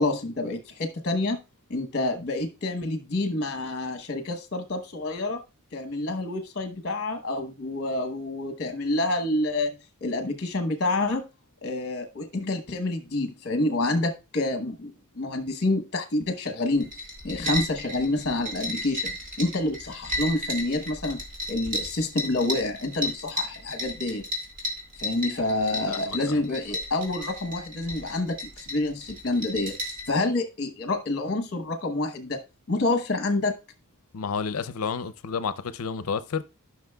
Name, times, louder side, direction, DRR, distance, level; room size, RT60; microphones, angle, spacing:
voice 1, 0.0-1.4 1.7-5.4 5.7-9.7 10.0-11.2 11.6-16.9 17.2-19.1 19.4-21.2 21.5-24.2 25.0-29.8 30.1-32.4 32.7-33.5, left 2 dB, 50° left, 1.0 m, -28 dB
sound 1, 16.8-30.1, left 1 dB, 40° right, 2.4 m, -34 dB
voice 2, 25.9-26.3 34.1-36.4, left 5 dB, 70° left, 0.6 m, -30 dB
13.0 x 6.0 x 2.3 m
head